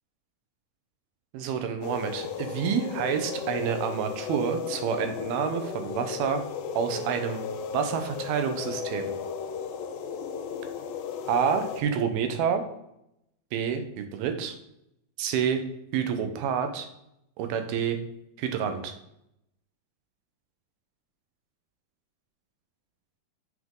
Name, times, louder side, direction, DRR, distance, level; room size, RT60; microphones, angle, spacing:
voice 1, 1.3-6.4 6.8-7.4 7.7-9.1 11.3-12.6 13.5-14.5 15.2-15.6 15.9-16.9 17.4-18.0 18.4-18.9, right 7 dB, 80° right, 7 dB, 2.7 m, -28 dB
sound 1, 1.8-11.8, left 6 dB, 80° left, 2.3 m, -35 dB
7.6 x 6.0 x 3.7 m, 0.80 s
omnidirectional pair, 4.5 m